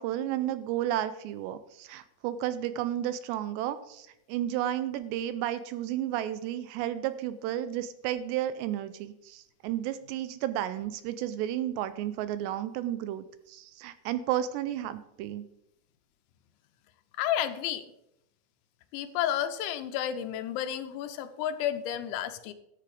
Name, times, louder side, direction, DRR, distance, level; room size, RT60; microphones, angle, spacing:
voice 1, 0.0-15.4, right 12 dB, 80° right, 13 dB, 2.6 m, -32 dB
voice 2, 17.2-17.8 18.9-22.5, left 11 dB, 90° left, 9 dB, 3.2 m, -31 dB
12.5 x 8.2 x 4.9 m, 0.80 s
omnidirectional pair, 5.2 m